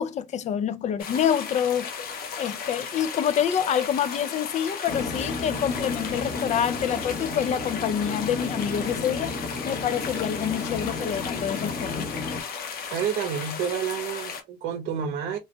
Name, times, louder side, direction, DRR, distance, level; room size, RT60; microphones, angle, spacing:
voice 1, 0.0-1.9 2.4-9.3 9.6-12.1, left 9 dB, 45° left, 0.4 m, -27 dB
sound 1, 1.0-14.4, left 6 dB, 65° left, 0.8 m, -35 dB
sound 2, 4.9-12.4, left 3 dB, 25° left, 0.8 m, -33 dB
voice 2, 12.9-15.4, right 8 dB, 80° right, 0.7 m, -29 dB
3.1 x 2.1 x 2.7 m
cardioid pair, 110°, 17 cm